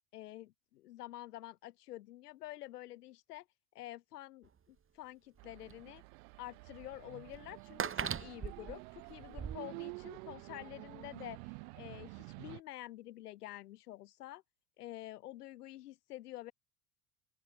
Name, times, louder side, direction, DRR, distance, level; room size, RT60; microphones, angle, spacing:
voice 1, 0.1-3.4 3.7-6.0 6.4-14.4 14.8-16.5, left 15 dB, 75° left, 3.3 m, -48 dB
sound 1, 4.4-4.5 5.4-5.5 5.7-5.8 6.8-6.9 7.3-9.6, right 7 dB, 25° right, 2.5 m, -39 dB
sound 2, 5.4-12.6, right 30 dB, 60° right, 2.7 m, -50 dB
open air
hypercardioid pair, 80°, 47 cm